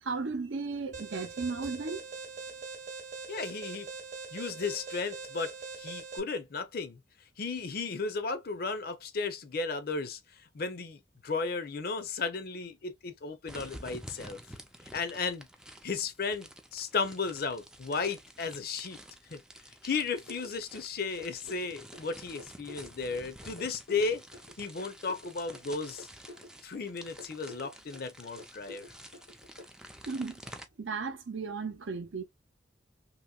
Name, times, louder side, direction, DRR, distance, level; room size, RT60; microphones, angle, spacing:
voice 1, 0.0-2.0 30.1-30.4 30.8-32.2, right 4 dB, 80° right, 0.7 m, -35 dB
Alarm, 0.9-6.2, right 4 dB, 40° right, 0.9 m, -42 dB
voice 2, 3.3-3.9 4.3-7.0 7.4-10.2 10.5-14.4 14.9-15.4 15.8-19.0 19.3-19.4 19.8-24.2 24.6-26.1 26.6-28.8, left 4 dB, 50° left, 0.5 m, -34 dB
sound 1, 13.5-30.6, right 1 dB, 5° right, 0.3 m, -50 dB
sound 2, 20.3-29.7, left 2 dB, 90° left, 1.0 m, -50 dB
2.9 x 2.8 x 2.3 m
head